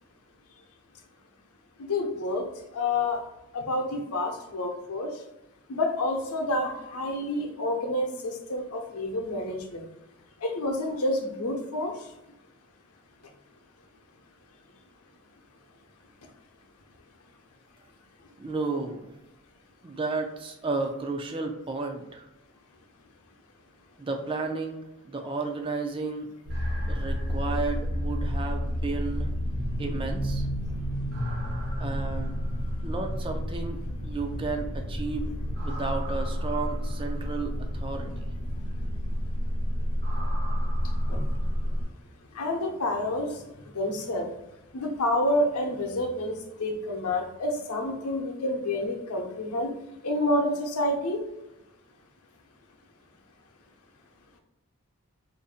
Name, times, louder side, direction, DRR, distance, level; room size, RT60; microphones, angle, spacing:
voice 1, 1.8-2.5 2.7-3.2 3.5-5.1 5.7-9.9 10.4-11.9 41.1-41.3 42.3-43.4 43.7-44.3 44.7-46.3 46.6-49.7 50.0-51.2, left 1 dB, 90° left, 3 dB, 0.7 m, -28 dB
voice 2, 18.4-19.1 19.8-22.3 24.0-26.3 26.9-29.3 29.8-30.5 31.8-32.4 32.8-35.3 35.6-38.3, right 3 dB, 25° right, 4 dB, 0.4 m, -33 dB
sound 1, 26.5-41.8, equal, 45° right, 0.8 m, -30 dB
5.1 x 2.6 x 2.4 m, 0.96 s
head